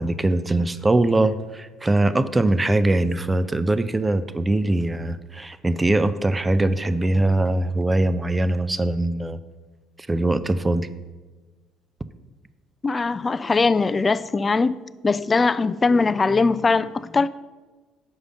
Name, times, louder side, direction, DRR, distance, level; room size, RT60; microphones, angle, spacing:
voice 1, 0.0-9.4 10.1-10.9 12.9-13.0, right 2 dB, 20° right, 0.5 m, -22 dB
voice 2, 12.8-14.7 15.0-17.3, left 4 dB, 30° left, 0.4 m, -20 dB
6.4 x 4.9 x 6.5 m
hypercardioid pair, 55°, 0 cm